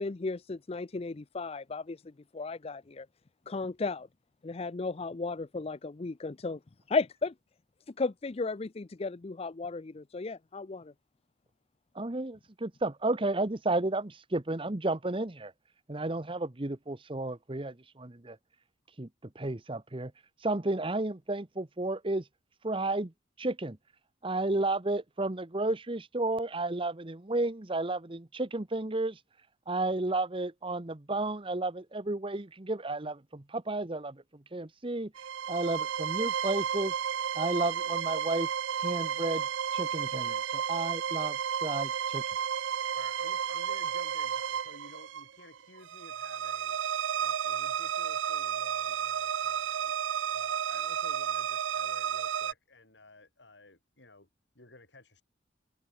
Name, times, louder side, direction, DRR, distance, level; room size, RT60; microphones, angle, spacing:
voice 1, 0.0-2.0 2.3-3.1 3.5-4.1 4.4-6.6 6.9-7.3 8.0-10.9, left 3 dB, 35° left, 0.5 m, -34 dB
voice 2, 11.9-15.5 15.9-18.4 19.0-19.1 19.3-20.1 20.4-22.2 22.6-23.1 23.4-23.8 24.2-29.2 29.7-34.2 34.5-35.1 35.5-36.9 37.3-38.5 38.8-39.5 39.7-42.2, right 2 dB, 30° right, 1.0 m, -32 dB
sound 1, 35.2-52.5, right 8 dB, 90° right, 0.5 m, -32 dB
voice 3, 43.0-46.8 47.2-50.0 50.3-54.3 54.5-55.2, left 2 dB, 70° left, 7.3 m, -53 dB
head